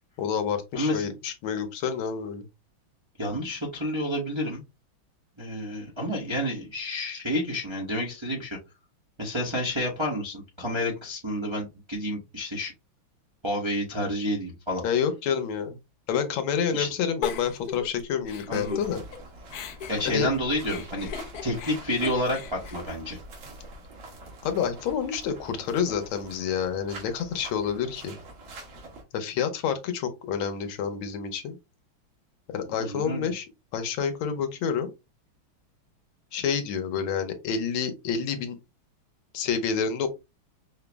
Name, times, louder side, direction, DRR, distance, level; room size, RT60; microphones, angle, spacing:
voice 1, 0.2-2.5 14.8-15.8 16.1-19.0 20.0-20.3 24.4-28.2 29.1-31.6 32.5-33.5 33.7-34.9 36.3-38.6 39.3-40.1, left 7 dB, 90° left, 7 dB, 1.6 m, -28 dB
voice 2, 0.7-1.1 3.2-4.6 5.4-8.6 9.2-12.7 13.4-14.8 16.7-16.9 18.5-18.8 19.9-21.1 21.4-23.2 32.8-33.3, left 1 dB, 30° right, -4 dB, 0.5 m, -29 dB
Giggle, 17.2-19.2 19.5-23.7, left 7 dB, 65° left, 1.0 m, -38 dB
sound 1, 18.8-29.0, right 2 dB, 70° right, 2.0 m, -45 dB
5.5 x 2.0 x 3.3 m, 0.25 s
omnidirectional pair, 2.2 m